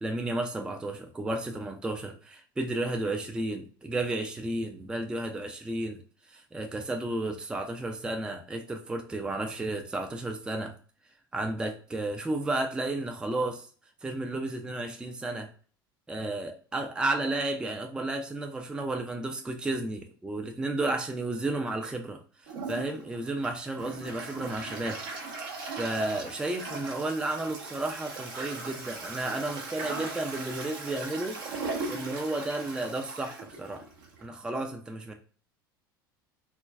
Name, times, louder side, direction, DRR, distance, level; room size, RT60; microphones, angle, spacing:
voice 1, 0.0-6.0 6.3-10.7 11.3-13.7 14.0-15.5 16.1-25.0 25.8-31.4 31.9-33.9 34.2-35.1, right 2 dB, 5° right, 4 dB, 0.4 m, -32 dB
Toilet flush, 22.5-34.3, right 3 dB, 65° right, 0.8 m, -39 dB
2.4 x 2.2 x 3.2 m, 0.41 s
figure-of-eight pair, 75°, 12 cm